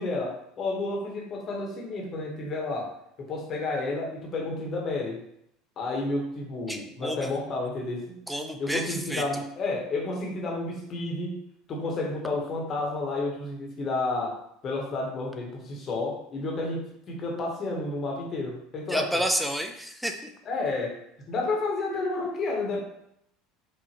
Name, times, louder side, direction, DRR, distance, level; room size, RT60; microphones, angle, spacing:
voice 1, 0.0-2.9 3.2-5.2 5.8-8.2 8.6-11.4 11.7-14.4 14.6-19.2 20.4-20.9 21.3-22.8, left 2 dB, 40° left, -1 dB, 1.0 m, -31 dB
voice 2, 6.7-7.3 8.3-9.4 18.9-20.3, equal, ahead, 4 dB, 0.5 m, -30 dB
4.8 x 2.4 x 2.9 m, 0.74 s
hypercardioid pair, 70°, 0 cm